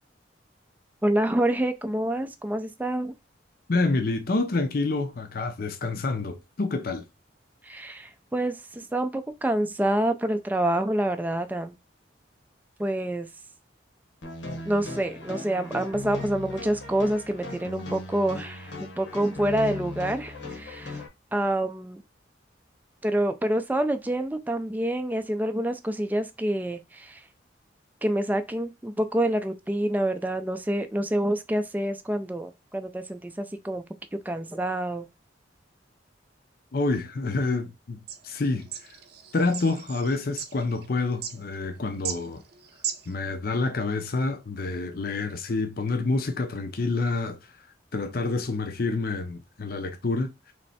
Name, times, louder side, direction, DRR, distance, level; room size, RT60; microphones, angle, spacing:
voice 1, 1.0-3.1 7.6-11.7 12.8-13.3 14.6-21.0 21.3-22.0 23.0-27.2 28.0-33.8 34.3-35.1, right 1 dB, 10° right, 0.4 m, -27 dB
voice 2, 3.7-7.0 36.7-38.7 39.3-42.4 43.1-47.4 47.9-50.5, left 3 dB, 55° left, 0.6 m, -28 dB
sound 1, 14.2-21.1, left 2 dB, 80° left, 1.2 m, -38 dB
sound 2, 38.1-43.1, right 8 dB, 60° right, 0.7 m, -37 dB
3.2 x 3.1 x 4.1 m
head